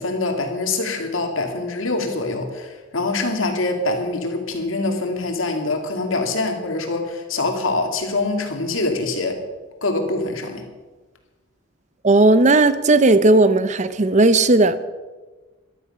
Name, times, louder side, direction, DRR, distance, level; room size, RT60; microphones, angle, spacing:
voice 1, 0.0-9.4 9.8-10.7, left 2 dB, 90° left, 4 dB, 2.4 m, -24 dB
voice 2, 12.0-14.9, right 2 dB, 35° right, 14 dB, 0.7 m, -15 dB
14.5 x 12.0 x 5.6 m, 1.3 s
head